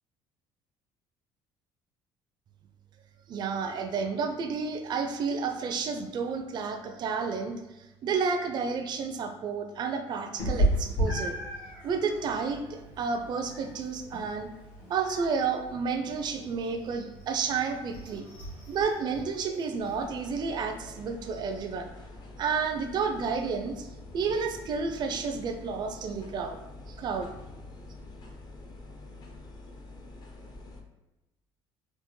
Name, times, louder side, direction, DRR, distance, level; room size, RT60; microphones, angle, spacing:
voice 1, 3.3-7.6 8.0-11.4 11.8-14.5 14.9-18.3 18.7-21.9 22.4-23.9 24.1-26.6 26.9-27.3, right 5 dB, 45° right, 5 dB, 0.4 m, -31 dB
Meow, 10.4-20.0, right 1 dB, 70° left, 1.2 m, -35 dB
sound 1, 19.8-30.8, left 2 dB, 45° left, 0.6 m, -46 dB
3.4 x 2.1 x 3.0 m, 1.0 s
supercardioid pair, 90°, 10 cm